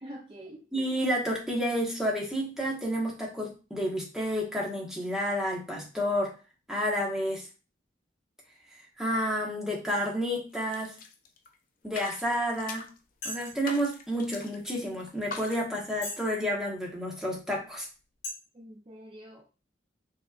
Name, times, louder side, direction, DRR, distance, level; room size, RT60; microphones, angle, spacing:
voice 1, 0.0-0.7 18.5-19.4, equal, 25° right, 0 dB, 0.6 m, -45 dB
voice 2, 0.7-6.3 6.7-7.5 9.0-10.9 11.8-12.9 13.2-17.9, equal, 5° right, -3 dB, 1.2 m, -30 dB
sound 1, 10.5-11.6 11.9-13.0 13.4-14.7 15.0-15.6, left 4 dB, 45° left, 0.6 m, -43 dB
sound 2, 12.5-12.6 13.2-13.7 14.4-14.5 15.1-15.2 16.0-16.3 16.9-17.0 17.7-17.8 18.2-18.3, left 2 dB, 70° left, 2.6 m, -38 dB
5.7 x 3.2 x 2.4 m, 0.32 s
head